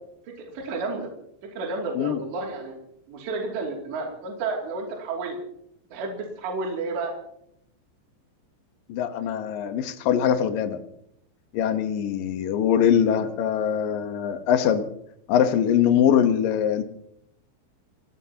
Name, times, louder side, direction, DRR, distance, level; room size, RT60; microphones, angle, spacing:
voice 1, 0.4-1.1 1.5-2.7 3.1-5.4 5.9-7.1, right 3 dB, 65° right, -1 dB, 4.8 m, -31 dB
voice 2, 8.9-10.8 11.5-14.8 15.3-16.8, left 9 dB, 70° left, 8 dB, 2.1 m, -22 dB
29.5 x 16.5 x 2.9 m, 0.74 s
omnidirectional pair, 5.6 m